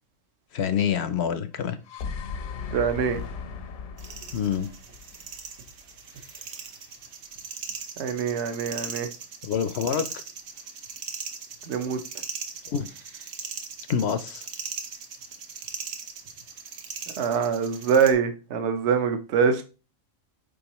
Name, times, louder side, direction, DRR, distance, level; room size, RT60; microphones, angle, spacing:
voice 1, 0.5-1.8 4.3-4.7 9.4-10.2 12.7-12.9 13.9-14.5, left 8 dB, 65° left, 0.7 m, -26 dB
sound 1, 1.6-5.8, left 6 dB, 80° left, 1.2 m, -37 dB
voice 2, 2.7-3.2 8.0-9.1 11.7-12.0 17.2-19.6, right 6 dB, 60° right, 1.0 m, -24 dB
sound 2, 4.0-18.1, right 6 dB, 85° right, 1.3 m, -39 dB
9.1 x 3.7 x 3.0 m
omnidirectional pair, 1.4 m